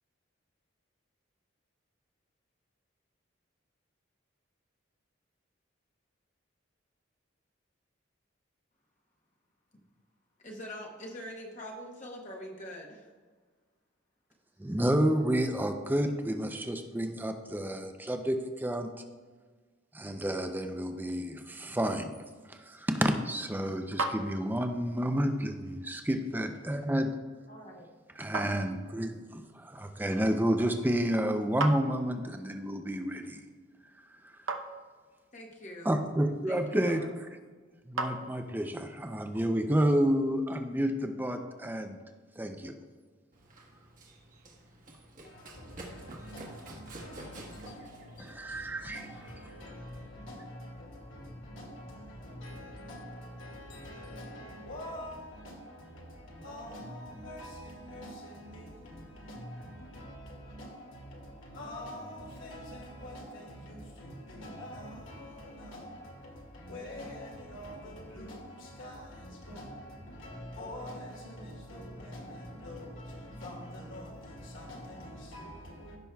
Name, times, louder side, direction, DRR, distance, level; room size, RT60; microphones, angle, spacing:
voice 1, 10.4-13.1 27.5-27.9 35.3-35.9 36.5-37.1, equal, 35° left, 1.0 m, -44 dB
voice 2, 14.6-18.9 19.9-22.1 22.5-27.2 28.2-33.4 35.8-37.0 37.9-42.0 42.4-42.8 48.2-49.2, equal, 10° right, 0.4 m, -30 dB
sound 1, 23.0-38.8, right 2 dB, 80° right, 0.7 m, -42 dB
Run, 43.3-49.3, right 1 dB, 40° right, 1.3 m, -50 dB
voice 3, 45.2-76.0, equal, 80° left, 2.2 m, -45 dB
15.5 x 6.1 x 2.3 m
head